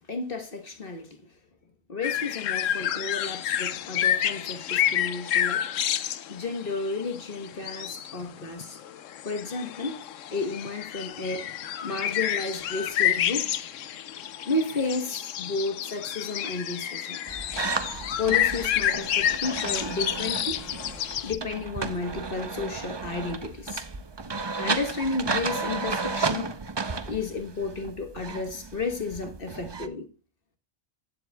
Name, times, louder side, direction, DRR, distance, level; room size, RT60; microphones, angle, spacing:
voice 1, 0.1-1.2 1.9-5.7 6.3-8.8 9.2-10.0 10.3-11.5 11.8-13.5 14.4-17.2 18.2-20.6 21.2-23.8 24.6-26.5 27.1-30.1, left 3 dB, 45° left, 1.4 m, -32 dB
sound 1, 2.0-21.4, left 10 dB, 75° left, 1.0 m, -29 dB
sound 2, 17.3-29.9, right 4 dB, 30° right, 0.5 m, -33 dB
14.5 x 7.5 x 2.3 m
omnidirectional pair, 1.3 m